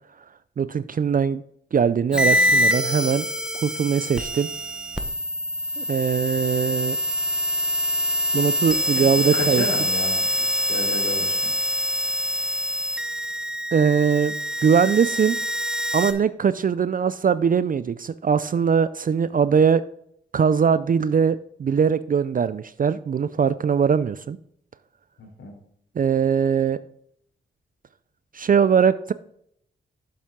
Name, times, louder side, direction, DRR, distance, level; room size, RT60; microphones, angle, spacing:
voice 1, 0.6-1.4 1.7-3.3 3.5-4.5 5.8-7.0 8.3-9.6 13.7-14.3 14.6-15.4 15.9-19.8 20.3-24.4 26.0-26.8 28.3-29.1, right 7 dB, 45° right, 15 dB, 0.4 m, -21 dB
sound 1, 2.1-16.1, equal, 5° right, 1.1 m, -25 dB
voice 2, 9.5-11.5 25.2-25.5, left 3 dB, 70° left, -1 dB, 3.5 m, -33 dB
7.3 x 7.1 x 3.7 m, 0.70 s
cardioid pair, 50°, 21 cm